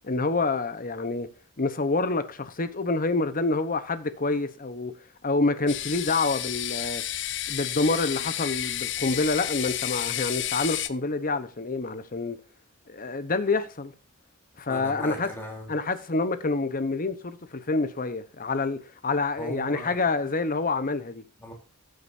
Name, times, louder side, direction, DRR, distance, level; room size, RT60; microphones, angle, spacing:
voice 1, 0.0-1.3 1.6-4.9 5.2-7.0 7.5-12.4 12.9-13.9 14.6-15.3 15.7-21.2, left 3 dB, 40° left, 1.0 m, -27 dB
sound 1, 5.7-10.9, left 12 dB, 55° left, 0.7 m, -31 dB
voice 2, 14.7-15.7 19.4-20.0 21.4-21.5, equal, 10° left, 3.6 m, -37 dB
14.0 x 7.8 x 2.7 m
head